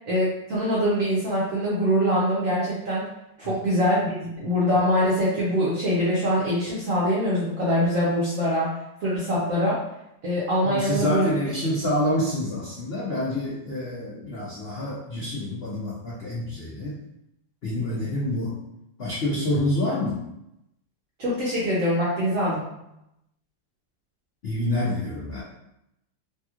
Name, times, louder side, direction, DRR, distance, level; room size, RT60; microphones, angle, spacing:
voice 1, 0.1-3.0 3.4-9.8 10.2-11.2 21.2-22.7, equal, 65° right, -6 dB, 0.8 m, -23 dB
voice 2, 10.6-17.0 17.6-18.5 19.0-20.2 24.4-25.4, left 1 dB, 75° left, -8 dB, 0.5 m, -27 dB
3.2 x 2.9 x 2.4 m, 0.84 s
omnidirectional pair, 2.1 m